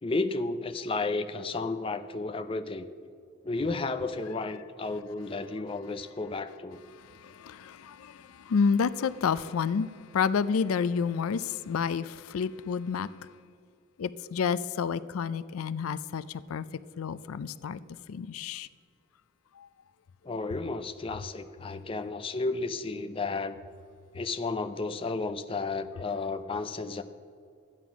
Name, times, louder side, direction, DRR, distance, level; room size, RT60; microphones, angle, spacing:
voice 1, 0.0-2.9 3.4-6.8 20.2-23.6 24.1-27.0, left 3 dB, 25° left, 9 dB, 0.4 m, -32 dB
voice 2, 7.0-13.1 14.0-16.7 17.0-17.8 18.1-18.7 19.6-19.7, left 6 dB, 90° left, 17 dB, 0.4 m, -30 dB
13.0 x 9.1 x 5.9 m, 2.3 s
head